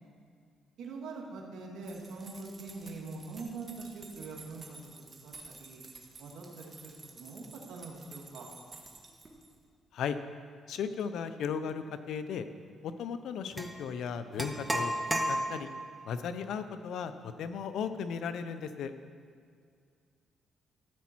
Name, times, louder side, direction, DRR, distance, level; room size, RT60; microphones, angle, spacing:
voice 1, 0.8-5.8 6.2-8.5, right 3 dB, 80° right, -1 dB, 2.1 m, -44 dB
sound 1, 1.8-9.6, right 3 dB, 30° right, 1.6 m, -52 dB
voice 2, 10.7-12.5 12.8-14.9 15.3-15.7 16.1-18.9, left 7 dB, 75° left, 10 dB, 0.6 m, -36 dB
sound 2, 13.6-13.7 14.4-15.9, right 1 dB, 15° right, 1.0 m, -32 dB
13.5 x 8.3 x 4.5 m, 2.2 s
cardioid pair, 90°, 0 cm